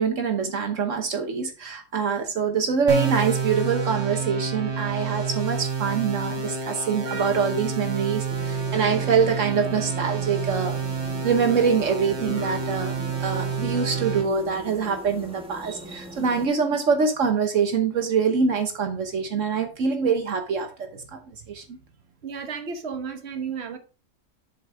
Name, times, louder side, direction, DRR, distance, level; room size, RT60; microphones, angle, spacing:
voice 1, 0.0-10.8 11.2-12.9 13.2-21.2 21.5-21.6, right 6 dB, 75° right, 1.4 m, -24 dB
sound 1, 2.9-14.2, right 5 dB, 20° right, 1.4 m, -29 dB
sound 2, 8.3-16.5, right 1 dB, 5° right, 1.6 m, -41 dB
voice 2, 22.2-23.8, right 6 dB, 55° right, 1.4 m, -33 dB
7.5 x 6.6 x 3.4 m
omnidirectional pair, 1.3 m